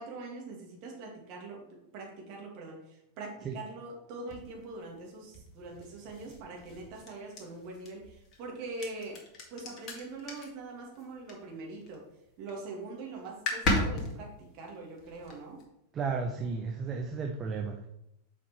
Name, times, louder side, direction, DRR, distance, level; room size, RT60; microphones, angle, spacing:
voice 1, 0.0-1.6 1.9-9.2 9.5-12.0 12.4-15.6, right 3 dB, 40° right, -1 dB, 2.4 m, -43 dB
sound 1, 4.3-12.0 12.3-12.7 13.0-13.1 13.3-15.6, left 2 dB, 35° left, 2.0 m, -36 dB
voice 2, 15.9-17.9, right 5 dB, 25° right, 3 dB, 0.8 m, -33 dB
6.9 x 5.2 x 4.6 m, 0.83 s
figure-of-eight pair, 90°, 0 cm